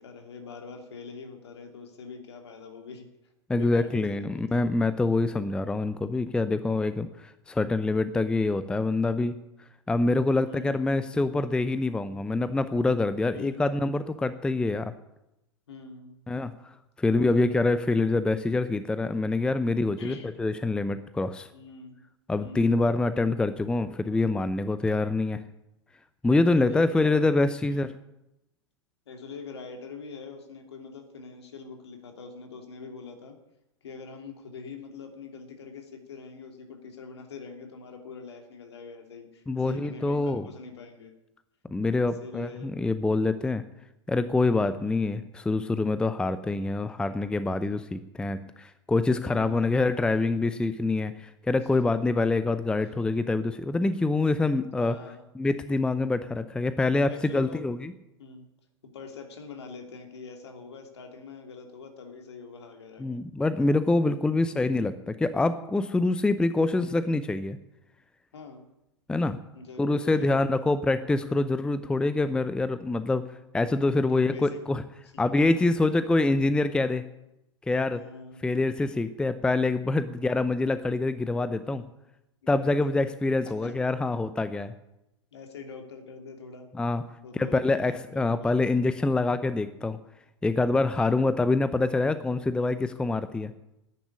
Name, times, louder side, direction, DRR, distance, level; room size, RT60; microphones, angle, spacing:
voice 1, 0.0-3.1 3.5-4.6 10.4-10.7 13.3-13.6 15.7-16.2 17.1-17.7 20.0-20.4 21.5-22.0 22.4-22.7 26.7-27.2 27.7-27.9 29.1-33.4 33.8-41.1 42.0-42.7 44.8-45.0 49.3-49.8 51.7-52.0 54.8-55.2 57.0-57.6 58.2-58.4 58.8-63.1 64.5-64.6 68.3-68.7 69.5-70.6 74.1-74.6 75.1-75.3 77.9-78.4 82.4-83.0 83.6-83.7 85.3-86.7 87.2-88.5 91.0-91.1, left 5 dB, 65° left, 4 dB, 3.0 m, -43 dB
voice 2, 3.5-9.4 9.9-14.9 16.3-16.7 17.0-21.5 22.3-25.4 26.2-27.9 39.5-40.5 41.7-43.6 44.1-55.0 55.4-57.9 63.0-67.6 69.1-69.4 69.8-74.8 75.2-77.0 77.7-78.0 78.4-81.8 82.5-84.7 86.8-87.0 87.3-90.0 90.4-93.5, left 2 dB, 5° left, 12 dB, 0.6 m, -25 dB
11.0 x 10.0 x 9.8 m, 0.89 s
figure-of-eight pair, 95°, 15 cm